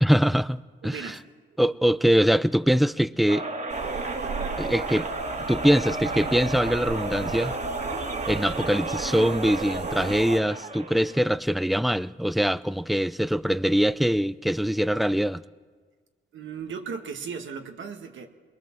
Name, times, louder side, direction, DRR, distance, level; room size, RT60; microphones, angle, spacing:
voice 1, 0.0-1.1 1.6-3.5 4.6-5.1 5.5-7.6 8.3-15.4, equal, ahead, 0.6 m, -23 dB
voice 2, 0.8-1.2 16.3-18.3, right 6 dB, 80° right, 1.9 m, -36 dB
sound 1, 3.3-11.2, right 2 dB, 45° right, 2.4 m, -33 dB
sound 2, 3.7-10.4, right 4 dB, 60° right, 2.8 m, -35 dB
22.5 x 22.0 x 7.5 m
cardioid pair, 65°, 19 cm